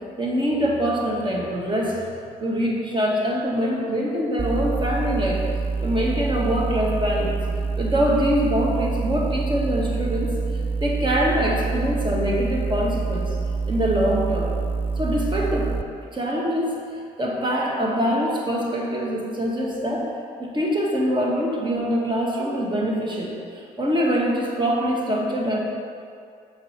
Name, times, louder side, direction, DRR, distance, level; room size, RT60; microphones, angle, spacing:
voice 1, 0.2-2.0 2.4-5.4 5.8-7.4 7.8-10.3 10.8-13.2 13.7-14.5 15.0-15.7 16.1-16.7 17.2-20.1 20.4-25.6, equal, 30° right, -3 dB, 1.6 m, -24 dB
sound 1, 4.4-15.8, right 4 dB, 10° right, 0.3 m, -26 dB
5.9 x 4.6 x 4.5 m, 2.3 s
supercardioid pair, 60°, 17 cm